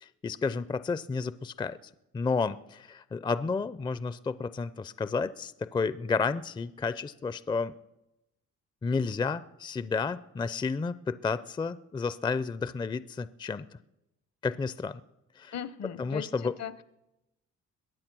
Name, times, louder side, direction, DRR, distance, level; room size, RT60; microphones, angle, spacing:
voice 1, 0.0-1.8 2.1-7.7 8.8-13.7 14.4-15.0 15.4-15.5 16.0-16.5, left 4 dB, 15° left, 15 dB, 0.4 m, -31 dB
voice 2, 15.5-16.8, left 8 dB, 60° left, 16 dB, 0.8 m, -39 dB
22.0 x 8.6 x 6.1 m, 0.92 s
cardioid pair, 90°, 30 cm